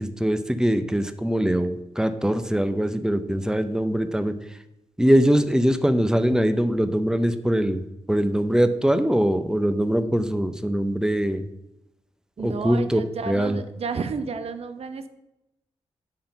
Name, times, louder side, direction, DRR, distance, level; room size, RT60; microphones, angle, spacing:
voice 1, 0.0-4.6 5.0-11.4 12.4-13.0 13.3-13.6, equal, 5° right, 9 dB, 0.7 m, -22 dB
voice 2, 12.4-15.1, right 5 dB, 60° right, 9 dB, 0.7 m, -31 dB
8.8 x 3.7 x 5.6 m, 0.90 s
cardioid pair, 55°, 12 cm